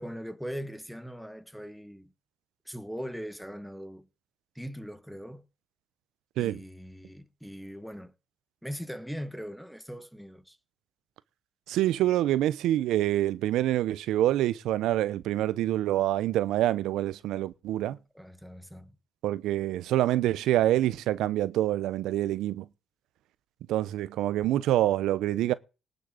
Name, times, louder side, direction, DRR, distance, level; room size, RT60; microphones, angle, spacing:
voice 1, 0.0-2.1 2.6-4.1 4.5-5.5 6.4-8.1 8.6-10.6 18.1-19.0, equal, ahead, 1.3 m, -40 dB
voice 2, 11.7-18.0 19.2-22.7 23.7-25.5, right 13 dB, 85° right, 0.9 m, -26 dB
19.0 x 6.6 x 5.1 m
cardioid pair, 90°, 0 cm